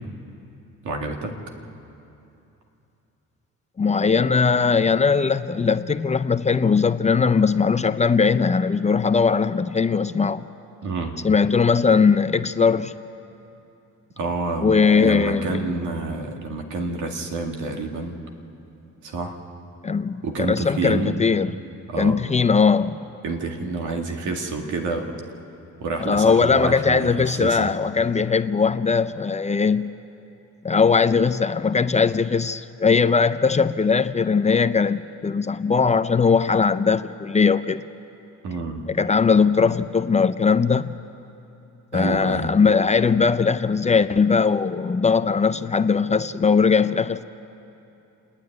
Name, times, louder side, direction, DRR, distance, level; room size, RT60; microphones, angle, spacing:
voice 1, 0.8-1.4 10.8-11.2 12.0-12.1 14.2-18.2 19.0-19.4 20.2-21.1 21.9-22.2 23.2-25.2 25.8-27.7 38.4-38.9 41.9-42.5, right 3 dB, 80° right, 2 dB, 2.2 m, -28 dB
voice 2, 3.8-10.5 11.2-12.9 14.6-15.7 19.8-21.5 22.0-23.0 26.0-29.9 30.6-37.8 38.9-40.9 41.9-47.2, left 5 dB, 25° left, 11 dB, 0.5 m, -20 dB
28.5 x 9.9 x 9.5 m, 2.9 s
cardioid pair, 90°, 30 cm